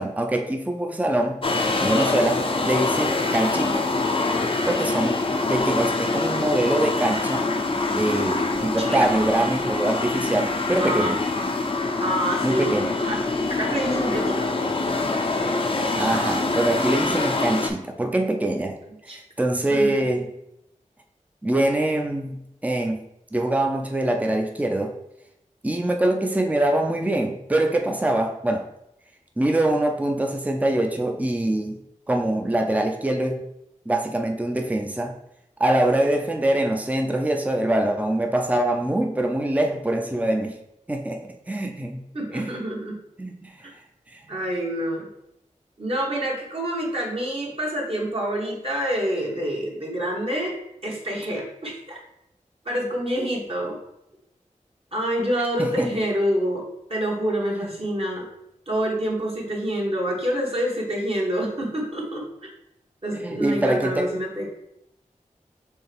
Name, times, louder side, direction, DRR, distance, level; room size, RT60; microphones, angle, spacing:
voice 1, 0.0-1.4 1.8-3.9 4.7-5.2 5.5-7.4 8.0-11.2 12.4-13.0 16.0-18.8 19.0-20.3 21.4-23.0 23.3-24.9 25.6-28.7 29.4-31.8 32.1-33.4 33.9-35.1 35.6-40.6 40.9-42.0 42.3-42.5 43.2-43.5 44.1-44.4 55.6-55.9 57.6-57.7 63.1-64.1, right 1 dB, 10° right, 3 dB, 0.5 m, -24 dB
sound 1, 1.4-17.7, left 3 dB, 45° left, 0.5 m, -25 dB
voice 2, 3.2-3.7 8.8-9.1 10.8-11.2 12.0-12.7 13.1-13.2 13.5-14.5 19.1-19.2 19.7-19.9 42.1-43.0 43.6-43.7 44.3-45.1 45.8-50.6 50.8-52.0 52.6-53.8 54.9-56.6 56.9-58.3 58.7-62.3 63.0-64.5, equal, 45° right, -3 dB, 1.4 m, -27 dB
4.5 x 3.4 x 3.4 m, 0.82 s
wide cardioid pair, 50°, 13 cm